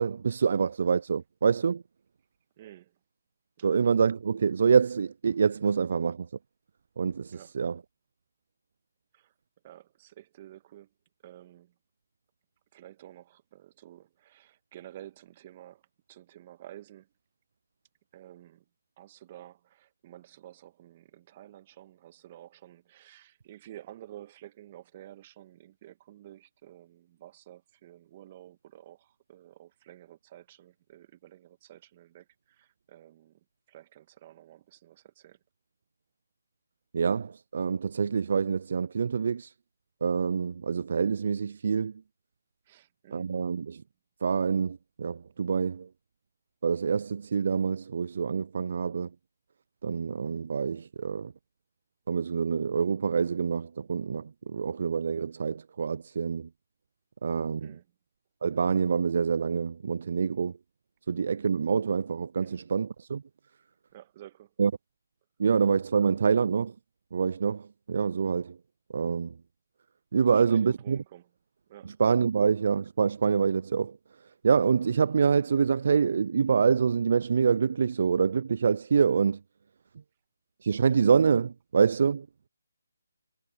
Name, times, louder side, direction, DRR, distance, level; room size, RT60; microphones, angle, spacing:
voice 1, 0.0-1.8 3.6-6.3 7.0-7.8 36.9-39.5 40.0-41.9 43.1-43.8 44.2-45.9 46.6-49.1 49.8-51.3 52.1-56.5 57.2-57.8 58.4-60.5 61.1-63.2 64.6-64.7 65.4-66.7 67.1-68.6 68.9-69.4 70.1-71.0 71.9-74.0 74.4-79.4 80.6-82.3, right 6 dB, 55° right, 0.3 m, -26 dB
voice 2, 2.6-3.0 3.6-3.8 7.3-7.6 9.1-9.3 9.6-10.9 11.2-11.7 12.7-15.8 16.1-17.1 18.1-18.7 19.0-35.4 42.7-43.3 57.6-57.9 62.4-62.6 63.9-64.5 70.2-71.3 71.7-72.0, right 13 dB, 30° right, 1.6 m, -51 dB
figure-of-eight pair, 150°, 0 cm